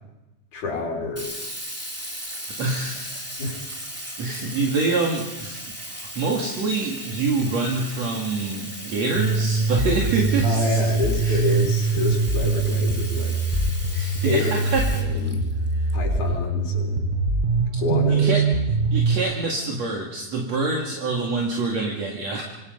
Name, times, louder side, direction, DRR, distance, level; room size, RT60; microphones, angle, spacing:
voice 1, 0.5-1.3 3.4-3.6 4.3-4.4 10.4-13.3 14.2-14.5 14.9-15.4 15.9-17.0 17.8-18.3, left 3 dB, 75° left, -1 dB, 5.1 m, -28 dB
Sink (filling or washing), 1.2-15.9, equal, 5° right, 2.4 m, -37 dB
voice 2, 2.3-3.3 4.2-5.6 5.9-10.8 11.2-11.6 13.5-13.6 13.9-14.9 15.8-15.9 18.1-18.5 18.9-22.4, right 3 dB, 60° right, -1 dB, 3.4 m, -26 dB
sound 1, 9.2-19.2, right 3 dB, 40° right, 0.6 m, -23 dB
26.5 x 24.5 x 5.4 m, 1.0 s
omnidirectional pair, 3.5 m